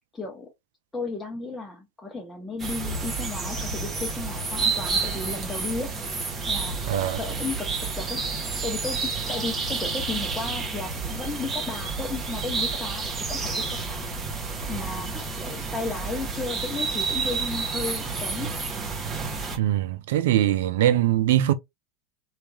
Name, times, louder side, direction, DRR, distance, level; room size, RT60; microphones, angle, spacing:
voice 1, 0.1-0.5 0.9-5.9 6.5-7.7 7.9-8.2 8.6-14.1 14.7-18.5, left 3 dB, 15° left, 0.7 m, -34 dB
sound 1, 2.6-19.6, right 4 dB, 20° right, 1.0 m, -30 dB
voice 2, 6.9-7.2 19.6-21.5, right 12 dB, 75° right, 0.4 m, -22 dB
2.9 x 2.4 x 2.2 m
hypercardioid pair, 100°, 0 cm